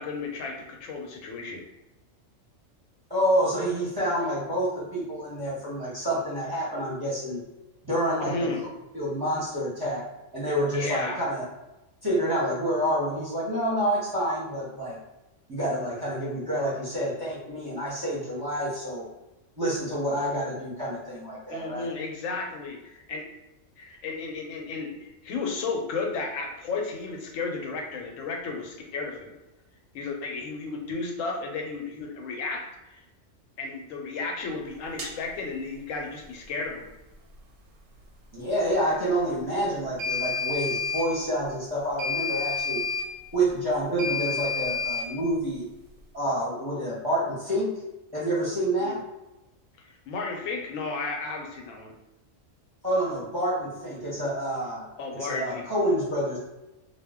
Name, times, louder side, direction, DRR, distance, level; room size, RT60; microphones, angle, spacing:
voice 1, 0.0-1.6 8.3-8.6 10.7-11.2 21.5-23.3 23.8-29.3 29.9-32.7 32.9-33.0 33.6-36.8 48.8-49.0 49.9-51.9 55.0-55.6, left 4 dB, 90° left, 2 dB, 1.0 m, -33 dB
voice 2, 3.1-7.4 7.8-8.5 8.9-10.0 10.3-11.4 12.0-15.0 15.5-19.0 19.6-21.9 38.3-42.8 43.3-45.6 46.1-47.7 48.1-49.0 52.8-56.4, right 1 dB, 25° right, -7 dB, 0.6 m, -28 dB
sound 1, 35.0-35.1 40.0-41.1 42.0-43.1 44.0-45.1, left 5 dB, 90° right, 1.0 m, -29 dB
2.3 x 2.1 x 3.4 m, 0.96 s
omnidirectional pair, 1.3 m